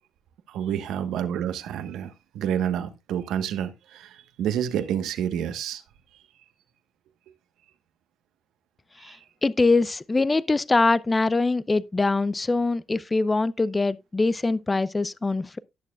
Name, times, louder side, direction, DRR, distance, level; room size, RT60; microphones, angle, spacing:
voice 1, 0.5-5.8 9.0-9.2, right 9 dB, 85° right, 1.2 m, -29 dB
voice 2, 9.4-15.6, left 3 dB, 20° left, 0.5 m, -23 dB
18.0 x 6.7 x 2.3 m
cardioid pair, 90°, 0 cm